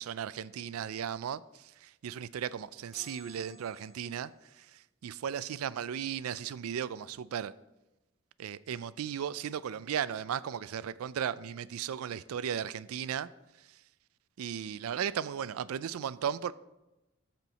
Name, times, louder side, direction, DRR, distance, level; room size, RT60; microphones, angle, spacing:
voice 1, 0.0-7.5 8.4-13.3 13.6-13.8 14.4-16.5, right 8 dB, 85° right, 0.4 m, -36 dB
sound 1, 2.9-4.4, left 1 dB, ahead, 2.7 m, -54 dB
13.0 x 4.5 x 4.1 m
head